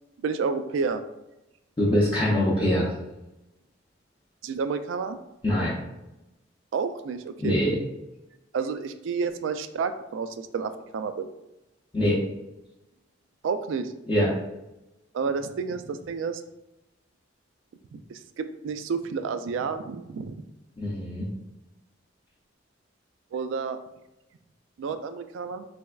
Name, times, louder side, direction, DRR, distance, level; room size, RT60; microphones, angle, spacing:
voice 1, 0.2-1.0 4.4-5.2 6.7-7.6 8.5-11.3 13.4-13.9 15.1-16.4 17.9-20.4 23.3-23.8 24.8-25.7, right 5 dB, 80° right, 10 dB, 0.3 m, -30 dB
voice 2, 1.8-2.9 5.4-5.8 7.4-7.8 11.9-12.2 14.1-14.3 20.8-21.3, left 1 dB, 25° left, -7 dB, 0.5 m, -23 dB
4.0 x 3.4 x 2.3 m, 0.95 s
head